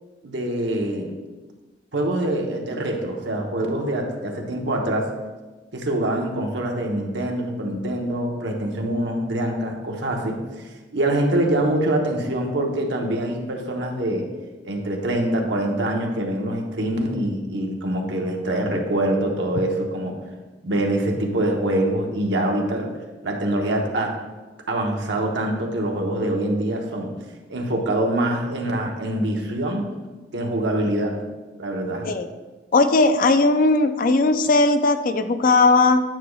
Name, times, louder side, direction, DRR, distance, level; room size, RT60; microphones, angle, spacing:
voice 1, 0.2-1.1 1.9-5.1 5.7-14.3 14.6-20.2 20.6-22.9 23.2-24.2 24.7-27.1 27.5-29.9 30.3-31.2 31.6-32.1, right 1 dB, 80° right, 1 dB, 1.0 m, -24 dB
voice 2, 32.7-36.0, left 3 dB, 50° left, 10 dB, 0.4 m, -18 dB
9.2 x 6.4 x 2.3 m, 1.2 s
head